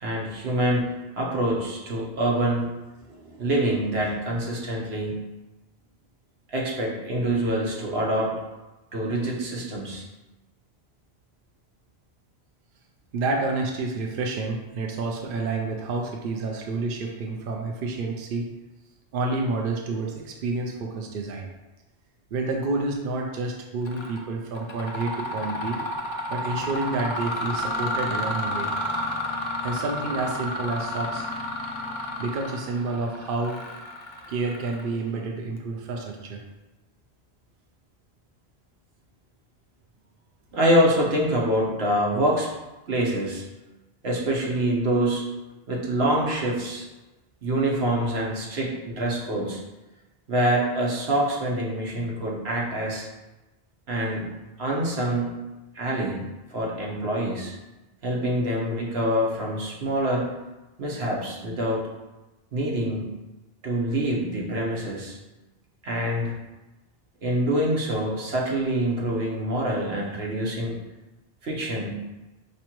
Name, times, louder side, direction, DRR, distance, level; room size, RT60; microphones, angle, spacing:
voice 1, 0.0-2.7 3.2-5.2 6.5-8.3 8.9-10.0 40.5-42.5 42.9-43.4 44.0-45.2 45.7-46.8 47.4-49.6 50.3-53.0 53.9-54.3 54.6-55.3 55.7-56.2 56.5-57.5 58.0-60.3 60.8-61.8 62.5-63.1 63.6-65.2 65.8-66.3 67.2-70.8 71.4-72.0, right 1 dB, 85° right, -3 dB, 1.2 m, -25 dB
voice 2, 13.1-18.5 19.1-21.5 22.3-25.8 26.3-28.7 29.6-31.3 32.2-33.6 34.3-36.4, right 3 dB, 65° right, 1 dB, 0.7 m, -29 dB
Mechanisms, 23.8-24.2 24.5-35.1, left 1 dB, 40° left, 0.4 m, -31 dB
5.1 x 3.2 x 3.0 m, 1.1 s
omnidirectional pair, 1.0 m